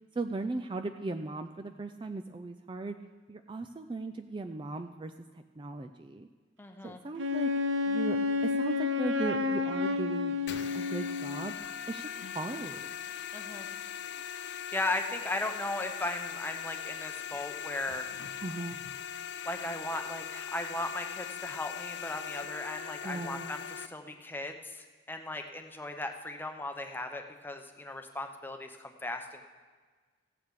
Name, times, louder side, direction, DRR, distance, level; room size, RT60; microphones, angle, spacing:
voice 1, 0.2-3.0 3.3-5.1 5.6-6.3 6.8-7.5 7.9-10.4 10.7-11.5 11.9-12.9 18.4-18.8 23.0-23.5, right 2 dB, 25° right, 6 dB, 0.4 m, -37 dB
voice 2, 6.6-7.0 13.3-13.7 14.4-18.4 19.4-29.5, left 2 dB, 10° left, 5 dB, 0.7 m, -37 dB
Wind instrument woodwind instrument, 7.2-11.5, left 4 dB, 70° right, 0.7 m, -30 dB
sound 1, 10.5-23.9, left 9 dB, 60° left, 0.5 m, -40 dB
15.5 x 8.7 x 4.8 m, 1.4 s
head